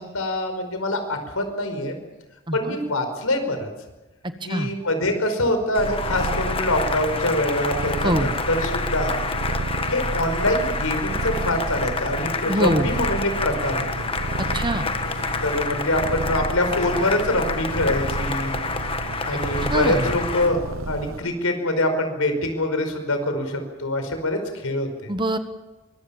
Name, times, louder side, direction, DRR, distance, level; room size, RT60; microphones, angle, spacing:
voice 1, 0.0-2.0 2.5-3.7 4.4-9.2 9.9-14.0 15.4-18.5 19.2-20.6 20.9-25.1, left 1 dB, 80° left, 7 dB, 5.2 m, -24 dB
voice 2, 2.5-2.8 4.5-4.7 8.0-8.3 12.5-12.9 14.5-14.8 19.7-20.1 25.1-25.4, right 1 dB, 20° right, 9 dB, 1.3 m, -23 dB
Cheering / Applause, 5.7-20.6, left 4 dB, 25° left, 1.4 m, -29 dB
Purr, 5.8-21.2, right 2 dB, 70° right, 1.0 m, -31 dB
24.5 x 22.5 x 7.3 m, 1.1 s
head